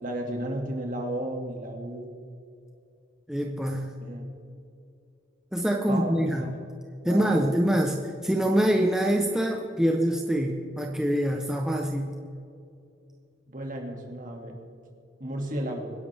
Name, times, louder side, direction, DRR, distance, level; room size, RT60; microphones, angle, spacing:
voice 1, 0.0-2.1 4.0-4.3 5.9-6.1 6.4-6.6 7.1-7.6 13.5-14.5 15.2-15.9, right 1 dB, 45° right, 1 dB, 2.4 m, -33 dB
voice 2, 3.3-3.9 5.5-6.5 7.0-12.1, equal, 5° right, 1 dB, 0.9 m, -25 dB
26.0 x 11.0 x 3.5 m, 2.6 s
head